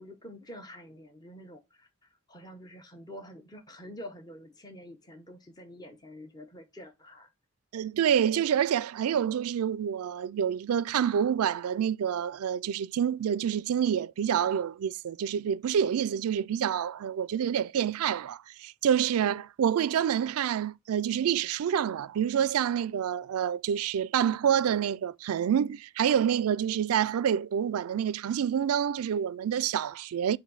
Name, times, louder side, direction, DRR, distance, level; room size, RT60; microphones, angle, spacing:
voice 1, 0.0-1.9 2.3-7.3, equal, 20° left, 0.8 m, -47 dB
voice 2, 7.7-30.4, right 8 dB, 80° right, 0.3 m, -27 dB
7.3 x 2.6 x 5.4 m
head